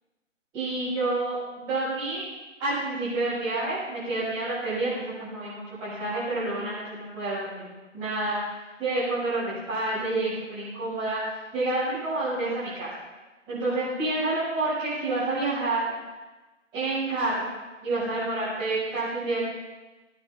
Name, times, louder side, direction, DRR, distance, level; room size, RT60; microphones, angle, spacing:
voice 1, 0.5-2.2 2.6-7.7 7.9-8.4 8.8-11.2 11.5-12.9 13.5-15.9 16.7-17.5 17.8-19.4, right 2 dB, 10° right, -15 dB, 6.4 m, -28 dB
19.0 x 10.0 x 5.6 m, 1.2 s
figure-of-eight pair, 150°, 38 cm